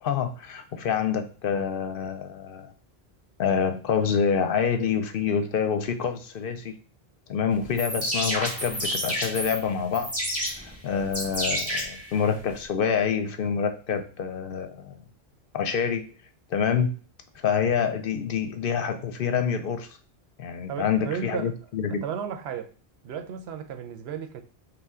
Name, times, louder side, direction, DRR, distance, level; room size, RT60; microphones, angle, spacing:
voice 1, 0.0-2.7 3.4-6.8 7.3-10.1 10.6-15.0 15.5-16.1 16.5-17.0 17.4-20.0 20.4-22.0, left 7 dB, 65° left, 0.7 m, -27 dB
sound 1, 7.6-12.6, equal, 15° right, 1.7 m, -30 dB
voice 2, 20.7-21.5 21.9-22.7 23.0-24.4, right 7 dB, 85° right, 0.9 m, -34 dB
5.4 x 2.2 x 3.6 m
omnidirectional pair, 1.0 m